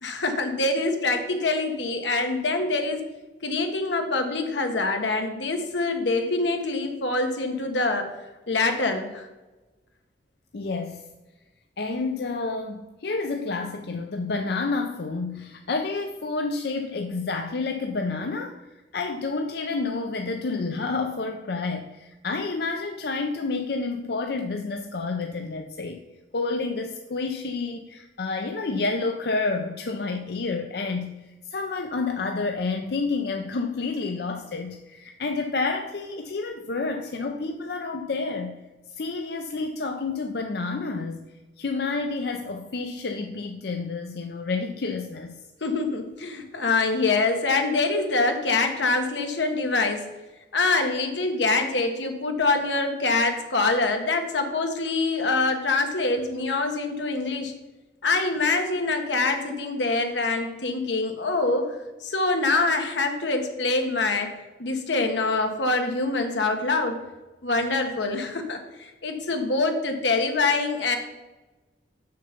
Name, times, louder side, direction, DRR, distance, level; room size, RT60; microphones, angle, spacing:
voice 1, 0.0-3.0 3.4-8.1 8.5-9.3 45.6-50.0 50.5-57.5 58.0-61.7 62.0-64.3 64.6-67.0 67.4-71.0, left 3 dB, 80° left, 5 dB, 1.3 m, -25 dB
voice 2, 10.5-11.0 11.8-18.7 18.9-26.0 26.3-38.6 38.9-45.4, left 3 dB, 60° left, 4 dB, 0.6 m, -29 dB
6.8 x 6.6 x 5.1 m, 1.1 s
head